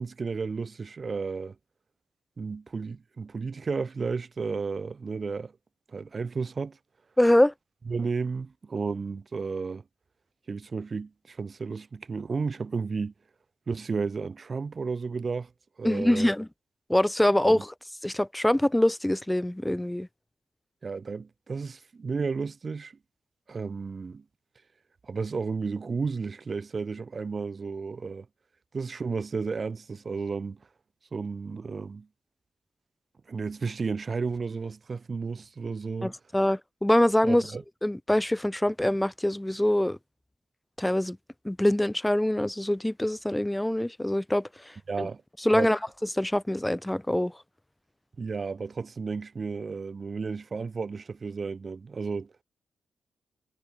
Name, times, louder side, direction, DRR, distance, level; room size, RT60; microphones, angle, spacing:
voice 1, 0.0-1.5 2.4-5.5 5.9-6.8 7.9-9.8 10.5-13.1 13.7-15.5 15.8-16.3 17.5-17.6 20.8-23.0 23.5-24.2 25.0-28.3 28.7-30.6 31.1-32.1 33.3-36.1 37.2-37.6 44.9-45.2 45.5-45.7 48.2-52.4, right 4 dB, 40° right, 3.1 m, -33 dB
voice 2, 7.2-7.5 15.8-16.5 16.9-17.7 18.0-20.1 36.0-37.5 37.8-40.0 40.8-41.2 41.4-44.5 45.0-45.1 45.4-45.8 46.1-47.3, left 1 dB, 5° left, 1.5 m, -24 dB
cardioid pair, 100°, 0 cm